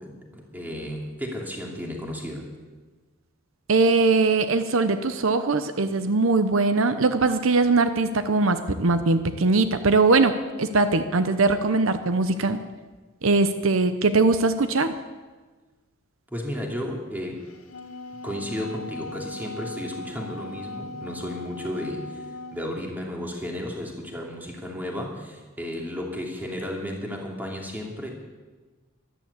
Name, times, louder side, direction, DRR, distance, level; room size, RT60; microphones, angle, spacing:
voice 1, 0.0-2.5 16.3-17.5 18.2-22.2 22.5-28.1, equal, 10° right, 0 dB, 2.7 m, -33 dB
voice 2, 3.7-10.3 10.6-12.6 13.2-14.9, right 3 dB, 70° right, 10 dB, 0.8 m, -21 dB
Wind instrument woodwind instrument, 17.5-22.6, left 2 dB, 90° left, 2.0 m, -39 dB
14.0 x 12.0 x 8.4 m, 1.3 s
head